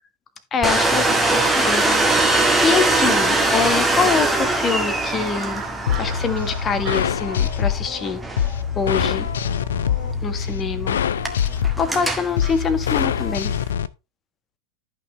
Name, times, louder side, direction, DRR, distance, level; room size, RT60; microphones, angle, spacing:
voice 1, 0.5-5.6 5.9-8.2 8.7-9.3 10.2-11.0 11.8-13.5, left 6 dB, 25° left, 10 dB, 1.7 m, -25 dB
Domestic sounds home sounds, 0.6-13.7, right 2 dB, 5° right, 1.9 m, -23 dB
sound 1, 1.8-13.3, right 6 dB, 35° right, 3.3 m, -40 dB
sound 2, 5.9-13.9, left 8 dB, 65° left, 0.6 m, -24 dB
13.5 x 6.1 x 3.3 m, 0.26 s
figure-of-eight pair, 90°, 0 cm